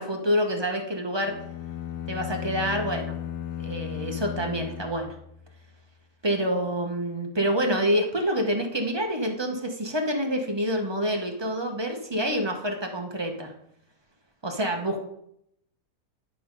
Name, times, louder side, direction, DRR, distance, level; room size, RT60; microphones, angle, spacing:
voice 1, 0.0-1.4 2.1-3.2 3.6-5.1 6.2-13.5 14.4-15.0, equal, 20° right, 3 dB, 0.7 m, -27 dB
sound 1, 1.2-5.6, left 10 dB, 65° left, 1.0 m, -35 dB
10.5 x 3.8 x 5.2 m, 0.75 s
omnidirectional pair, 1.7 m